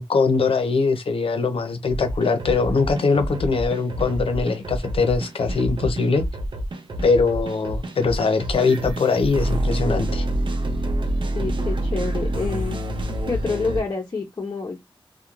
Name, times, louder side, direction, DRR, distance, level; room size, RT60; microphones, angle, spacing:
voice 1, 0.0-6.2 7.0-10.3, left 4 dB, 80° left, 0.6 m, -21 dB
sound 1, 1.9-13.8, right 1 dB, 60° right, 0.6 m, -27 dB
voice 2, 11.3-12.8 13.3-14.8, left 4 dB, 40° left, 0.6 m, -27 dB
2.4 x 2.1 x 2.9 m
wide cardioid pair, 105°, 9 cm